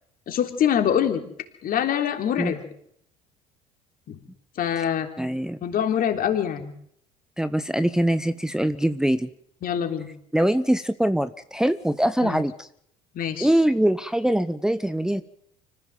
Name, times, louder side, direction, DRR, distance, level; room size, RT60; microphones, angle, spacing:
voice 1, 0.3-1.2 1.6-2.6 4.1-4.2 4.6-5.1 5.6-6.7 9.6-10.1 12.2-12.4 13.2-13.5, left 9 dB, 50° left, 5 dB, 3.5 m, -24 dB
voice 2, 5.2-5.6 7.4-9.3 10.3-12.7 13.4-15.2, right 1 dB, 5° right, 11 dB, 0.8 m, -23 dB
25.0 x 15.0 x 7.5 m, 0.70 s
hypercardioid pair, 65°, 19 cm